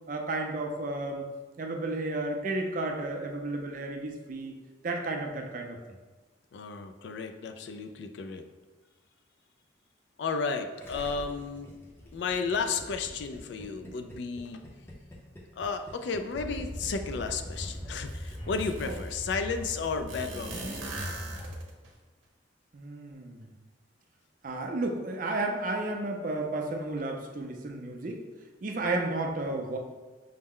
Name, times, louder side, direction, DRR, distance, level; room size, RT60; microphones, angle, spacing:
voice 1, 0.1-1.2 1.6-4.6 4.8-5.8 18.8-18.9 22.7-23.5 24.4-28.2 28.6-29.8, right 2 dB, 40° right, 3 dB, 0.4 m, -32 dB
voice 2, 6.5-8.4 10.2-11.7 12.1-14.6 15.6-20.9 28.8-28.9, left 4 dB, 60° left, 7 dB, 0.3 m, -33 dB
Gurgling, 10.8-18.4 18.6-18.7, equal, 10° left, 0.5 m, -47 dB
sound 1, 16.3-21.6, equal, 25° left, 1.0 m, -40 dB
sound 2, 17.6-17.7 18.1-19.2 20.1-21.9, right 2 dB, 80° right, 0.8 m, -40 dB
5.6 x 2.1 x 3.6 m, 1.3 s
head